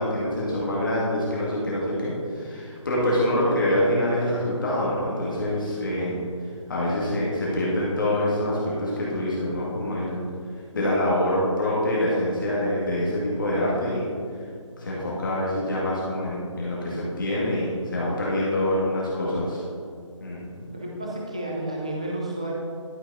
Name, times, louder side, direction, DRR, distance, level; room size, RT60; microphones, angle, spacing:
voice 1, 0.0-6.2 6.7-10.2 10.7-14.1 14.8-19.6 20.2-20.7, left 1 dB, 40° left, -6 dB, 1.8 m, -25 dB
voice 2, 20.7-22.5, right 1 dB, 10° right, -3 dB, 0.4 m, -31 dB
11.5 x 6.0 x 4.1 m, 2.2 s
hypercardioid pair, 175°, 17 cm